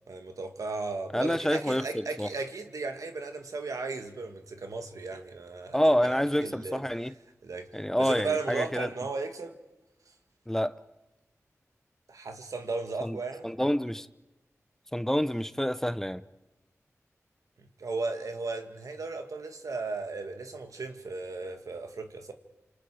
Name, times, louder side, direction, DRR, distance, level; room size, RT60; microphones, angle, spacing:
voice 1, 0.1-6.8 7.4-7.7 8.0-9.6 12.1-13.5 17.6-22.3, right 3 dB, 80° right, 2.1 m, -35 dB
voice 2, 1.1-2.3 5.7-7.1 7.7-8.9 10.5-10.7 13.0-13.2 13.4-14.1 14.9-16.2, equal, 5° left, 0.8 m, -27 dB
29.0 x 26.5 x 5.0 m
cardioid pair, 45°, 6 cm